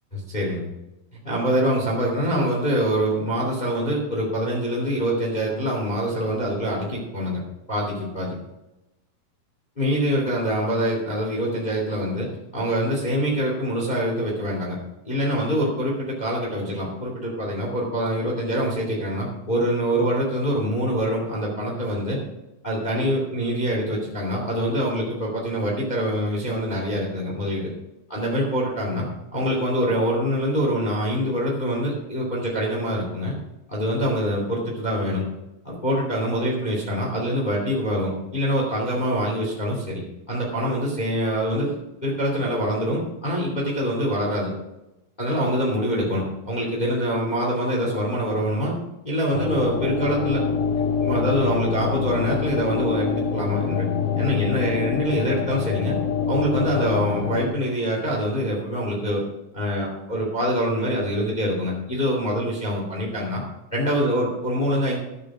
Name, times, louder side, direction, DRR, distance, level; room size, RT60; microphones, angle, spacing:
voice 1, 0.1-0.7 1.2-7.4 7.7-8.4 9.8-14.8 15.0-22.2 22.6-27.7 28.1-29.1 29.3-33.3 33.7-35.2 35.6-40.0 40.3-41.7 42.0-44.5 45.2-48.8 49.0-50.4 51.0-53.9 54.2-55.9 56.3-59.2 59.5-63.4 63.7-65.0, equal, 15° left, -2 dB, 2.3 m, -25 dB
sound 1, 49.3-57.4, left 6 dB, 65° left, 1.4 m, -25 dB
12.0 x 7.5 x 6.2 m, 0.96 s
omnidirectional pair, 4.1 m